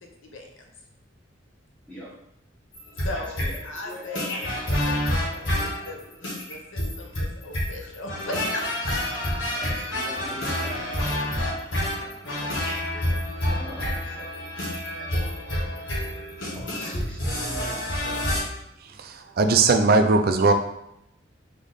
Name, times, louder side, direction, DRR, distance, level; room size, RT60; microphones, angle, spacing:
voice 1, 0.0-0.5 3.0-6.0 6.4-8.6 11.3-11.5 12.9-13.1, left 2 dB, 90° left, 1 dB, 0.9 m, -38 dB
sound 1, 2.7-18.4, left 1 dB, 70° left, 1.6 m, -28 dB
voice 2, 3.1-4.3 9.6-11.3 13.4-14.5 16.5-18.4, equal, 5° left, -7 dB, 1.5 m, -41 dB
voice 3, 19.0-20.5, right 3 dB, 50° right, 6 dB, 0.4 m, -19 dB
3.7 x 3.4 x 4.0 m, 0.79 s
head